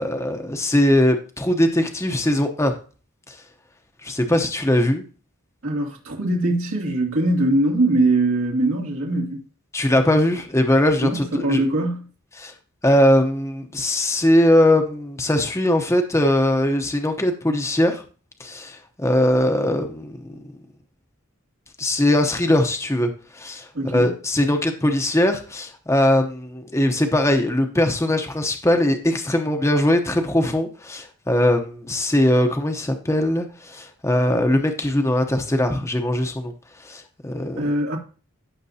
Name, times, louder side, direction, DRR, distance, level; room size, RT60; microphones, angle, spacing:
voice 1, 0.0-2.7 3.3-3.4 4.0-5.0 9.7-11.6 12.4-12.5 12.8-18.0 18.4-20.4 21.8-36.5 36.8-37.7, left 1 dB, 15° left, 0.8 m, -20 dB
voice 2, 5.6-9.4 11.0-12.1 23.7-24.1 37.6-38.0, right 2 dB, 80° right, 2.6 m, -22 dB
16.0 x 6.6 x 2.8 m
head